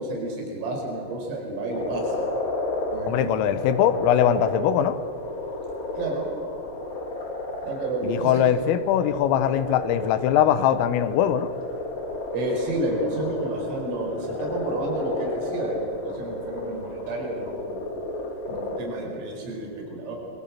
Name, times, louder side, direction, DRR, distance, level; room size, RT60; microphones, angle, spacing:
voice 1, 0.0-2.3 2.9-3.3 6.0-6.3 7.6-8.4 12.3-17.8 18.5-20.2, right 2 dB, 80° right, 1 dB, 7.4 m, -30 dB
sound 1, 1.7-18.8, left 2 dB, 45° left, 5.2 m, -32 dB
voice 2, 3.1-5.0 8.0-11.5, left 10 dB, 85° left, 12 dB, 3.7 m, -21 dB
27.5 x 23.0 x 7.6 m, 2.4 s
omnidirectional pair, 5.8 m